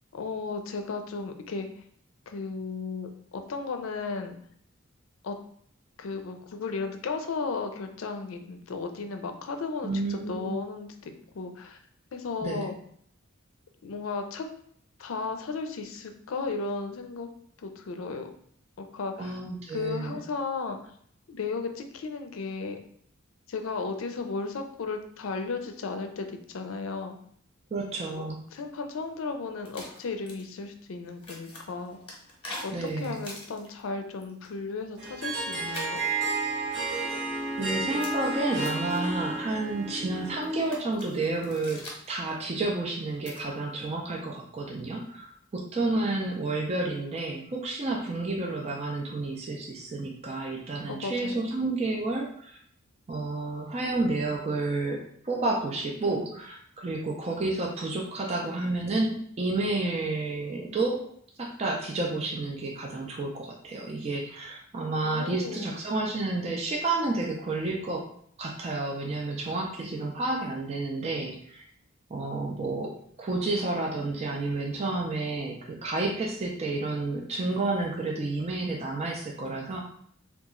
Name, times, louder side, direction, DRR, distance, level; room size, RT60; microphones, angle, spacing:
voice 1, 0.1-1.7 2.3-4.4 5.2-5.4 6.0-11.8 12.1-12.8 13.8-14.5 15.0-17.3 17.6-18.3 18.8-19.4 19.7-20.8 21.3-22.8 23.5-27.1 28.2-28.3 28.5-32.0 32.6-36.0 50.9-51.5 65.0-65.8, left 4 dB, 85° left, 6 dB, 0.4 m, -35 dB
voice 2, 9.8-10.6 12.4-12.7 19.2-20.2 27.7-28.4 32.7-33.2 37.6-52.6 53.1-61.0 61.4-68.1 68.4-71.6 72.1-72.9 73.2-79.8, right 2 dB, 30° right, 0 dB, 0.4 m, -30 dB
sound 1, 29.7-30.4 31.0-33.8 34.2-34.5 35.2-36.4 37.7-39.0 40.2-42.4 42.9-43.4 44.1-44.4, left 1 dB, 25° left, 0.9 m, -44 dB
Harp, 35.0-40.8, right 3 dB, 65° right, 1.2 m, -32 dB
2.9 x 2.3 x 3.6 m, 0.64 s
head